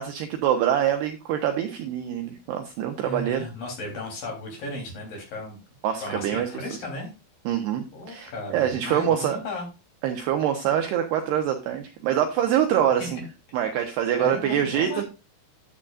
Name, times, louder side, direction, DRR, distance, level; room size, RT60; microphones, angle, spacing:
voice 1, 0.0-3.5 5.8-6.5 7.5-9.4 10.0-13.2 13.5-15.0, right 10 dB, 75° right, 6 dB, 2.5 m, -25 dB
voice 2, 3.0-5.6 6.0-7.1 7.9-9.7 13.0-13.1 14.2-15.1, left 2 dB, 45° left, 1 dB, 4.7 m, -35 dB
11.0 x 9.9 x 2.4 m, 0.27 s
omnidirectional pair, 5.8 m